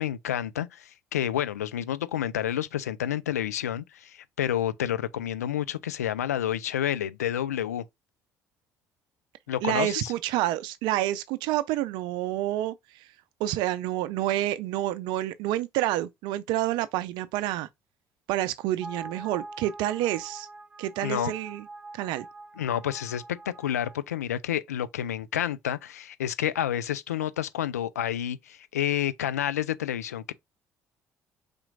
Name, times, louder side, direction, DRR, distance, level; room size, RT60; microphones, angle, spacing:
voice 1, 0.0-7.8 9.5-10.1 21.0-21.3 22.6-30.3, left 10 dB, 85° left, 0.4 m, -29 dB
voice 2, 9.6-13.1 13.4-17.7 18.3-20.5 20.8-21.6 21.9-22.3, right 14 dB, 65° right, 0.4 m, -28 dB
sound 1, 18.8-24.0, right 2 dB, 15° right, 1.2 m, -44 dB
5.1 x 4.3 x 2.5 m
hypercardioid pair, 50°, 8 cm